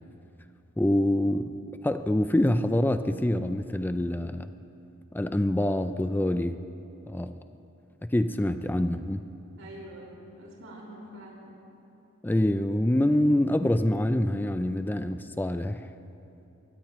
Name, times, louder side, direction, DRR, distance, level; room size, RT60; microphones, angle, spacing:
voice 1, 0.8-1.5 1.8-4.5 5.1-6.6 7.1-7.4 8.0-9.2 12.2-15.9, left 1 dB, 10° left, 9 dB, 0.4 m, -25 dB
voice 2, 9.6-11.6, right 1 dB, 90° right, -4 dB, 5.1 m, -45 dB
23.5 x 19.5 x 3.1 m, 2.8 s
head